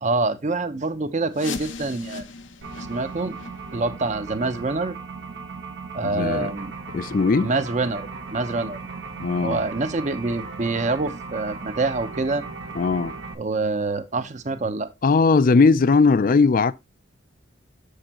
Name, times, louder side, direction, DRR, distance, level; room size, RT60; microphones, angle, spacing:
voice 1, 0.0-2.3 2.8-3.3 3.7-4.9 5.9-6.7 7.4-8.8 9.4-12.4 13.4-14.9, right 3 dB, 40° right, 0.8 m, -26 dB
sound 1, 1.3-6.9 7.2-7.4 7.9-8.0 8.6-8.7 9.3-9.4, left 4 dB, 90° left, 0.8 m, -40 dB
sound 2, 2.6-13.3, right 4 dB, 80° right, 1.4 m, -37 dB
voice 2, 6.0-6.5 6.9-7.5 9.2-9.6 12.7-13.1 15.0-16.7, left 4 dB, 45° left, 0.4 m, -19 dB
7.7 x 6.5 x 2.9 m
head